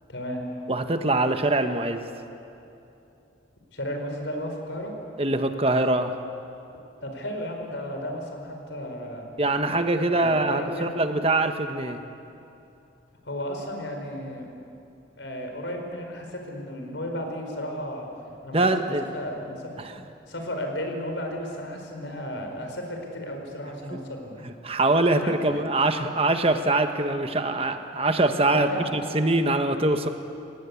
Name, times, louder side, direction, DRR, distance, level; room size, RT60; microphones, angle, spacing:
voice 1, 0.1-0.4 3.7-4.9 7.0-9.3 10.0-11.0 13.2-14.5 15.2-19.6 20.3-24.5 25.1-25.6 28.4-28.9 29.5-29.6, equal, 80° left, 3 dB, 4.7 m, -34 dB
voice 2, 0.7-2.1 5.2-6.2 9.4-12.0 18.5-19.1 19.8-19.9 24.4-30.1, right 2 dB, 30° right, 7 dB, 1.2 m, -23 dB
29.0 x 18.5 x 8.4 m, 2.8 s
head